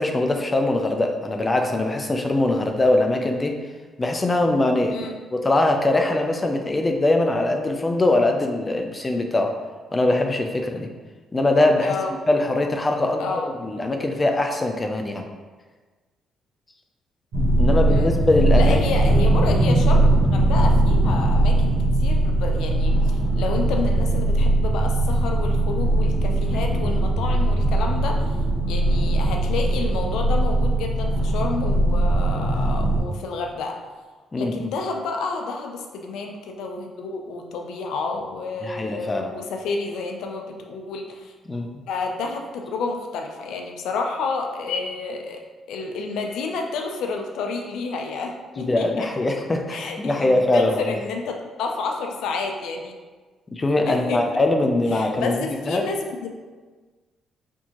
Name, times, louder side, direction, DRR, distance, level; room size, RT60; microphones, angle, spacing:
voice 1, 0.0-3.5 4.0-5.1 5.3-9.5 9.9-10.9 11.3-11.9 12.3-15.2 17.6-18.8 34.3-34.7 38.6-39.3 41.5-41.8 48.6-50.9 53.5-55.4 55.7-55.9, left 2 dB, 25° left, 3 dB, 0.4 m, -22 dB
voice 2, 11.8-12.1 13.2-13.5 17.9-18.1 18.5-28.4 28.7-33.8 34.4-41.3 41.9-45.4 45.7-49.1 49.7-52.9 53.9-54.4 54.9-56.3, left 4 dB, 85° left, 3 dB, 0.5 m, -30 dB
sound 1, 17.3-33.0, right 1 dB, 70° right, 1.0 m, -20 dB
4.4 x 2.8 x 2.9 m, 1.4 s
cardioid pair, 90°, 0 cm